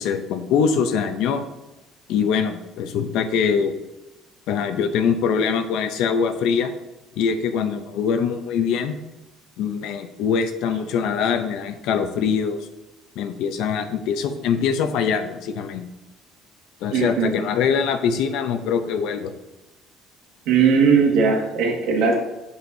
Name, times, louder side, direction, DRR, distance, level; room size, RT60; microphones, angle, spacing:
voice 1, 0.0-1.4 2.1-3.7 4.5-6.7 7.2-9.0 9.6-12.6 13.2-15.9 16.8-19.3, left 6 dB, 70° left, 7 dB, 0.6 m, -23 dB
voice 2, 16.9-17.3 20.5-22.1, right 5 dB, 80° right, 0 dB, 1.8 m, -18 dB
7.9 x 7.0 x 2.7 m, 1.0 s
cardioid pair, 160°, 0 cm